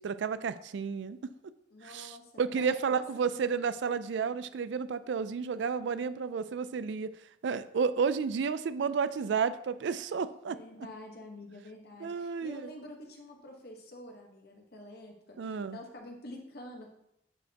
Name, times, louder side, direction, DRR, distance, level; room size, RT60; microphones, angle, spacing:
voice 1, 0.0-1.3 1.8-7.1 7.4-10.6 12.0-12.7 15.4-15.8, right 6 dB, 80° right, 14 dB, 0.4 m, -31 dB
voice 2, 1.7-3.4 10.5-17.0, left 1 dB, 60° left, 1 dB, 1.2 m, -48 dB
9.8 x 4.2 x 2.9 m, 0.79 s
head